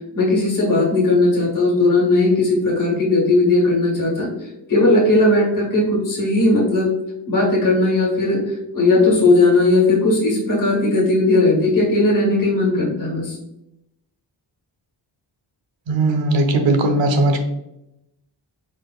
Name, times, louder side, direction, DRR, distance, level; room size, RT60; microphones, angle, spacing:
voice 1, 0.1-4.3 4.7-6.9 7.3-8.4 8.7-13.4, left 2 dB, 45° left, -3 dB, 1.4 m, -17 dB
voice 2, 15.9-17.5, right 2 dB, 80° right, 5 dB, 0.9 m, -18 dB
4.8 x 4.3 x 2.4 m, 0.86 s
wide cardioid pair, 175°, 45 cm